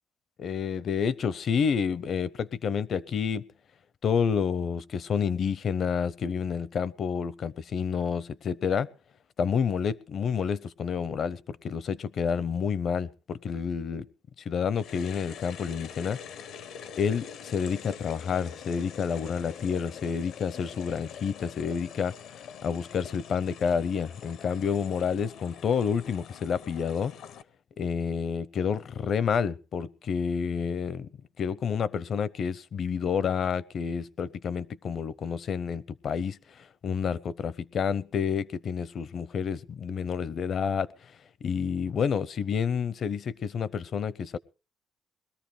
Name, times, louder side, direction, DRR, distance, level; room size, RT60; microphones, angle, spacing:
voice 1, 0.4-3.5 4.0-8.9 9.4-14.1 14.4-16.2 17.0-22.1 22.6-27.1 27.8-31.1 31.4-40.9 41.4-44.4, left 6 dB, 50° left, 0.7 m, -29 dB
sound 1, 14.7-27.4, left 8 dB, 75° left, 0.9 m, -44 dB
21.0 x 13.5 x 3.3 m
cardioid pair, 120°, 0 cm